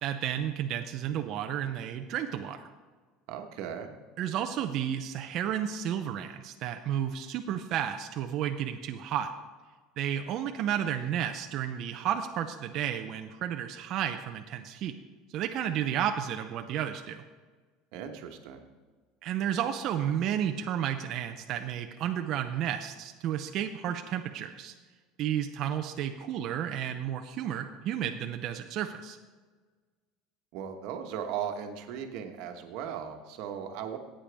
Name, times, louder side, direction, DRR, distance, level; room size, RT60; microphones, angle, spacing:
voice 1, 0.0-2.7 4.2-9.3 10.0-14.9 15.3-17.2 19.2-24.7 25.2-29.2, right 10 dB, 40° right, 5 dB, 0.5 m, -32 dB
voice 2, 3.3-3.9 17.9-18.6 30.5-34.0, right 8 dB, 55° right, 5 dB, 1.2 m, -37 dB
15.0 x 8.7 x 3.4 m, 1.4 s
cardioid pair, 170°, 0 cm